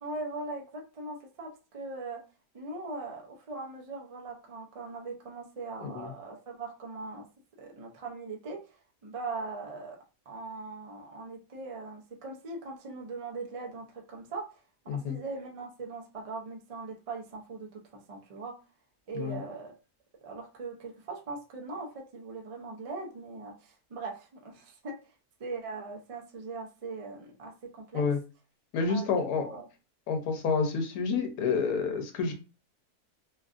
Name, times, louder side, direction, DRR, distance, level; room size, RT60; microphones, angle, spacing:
voice 1, 0.0-2.2 2.5-7.3 7.6-10.0 10.3-14.6 14.9-18.6 19.1-19.7 20.2-25.0 25.4-28.0 28.9-29.1 29.4-29.6, right 3 dB, 60° right, 0 dB, 0.3 m, -40 dB
voice 2, 14.9-15.2 19.1-19.4 27.9-28.2 28.7-29.5 30.1-32.3, left 5 dB, 85° left, 4 dB, 1.2 m, -29 dB
3.0 x 2.4 x 2.5 m, 0.32 s
omnidirectional pair, 1.6 m